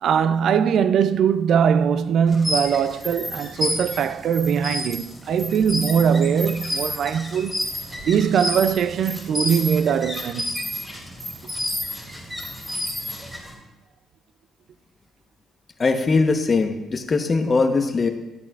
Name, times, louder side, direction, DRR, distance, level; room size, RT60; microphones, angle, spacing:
voice 1, 0.0-7.6 8.0-10.5, right 7 dB, 70° right, 0.3 m, -21 dB
sound 1, 2.3-13.5, left 1 dB, 5° right, 2.9 m, -30 dB
voice 2, 15.8-18.1, left 4 dB, 35° left, 1.0 m, -20 dB
12.5 x 8.5 x 2.4 m
cardioid pair, 90°, 0 cm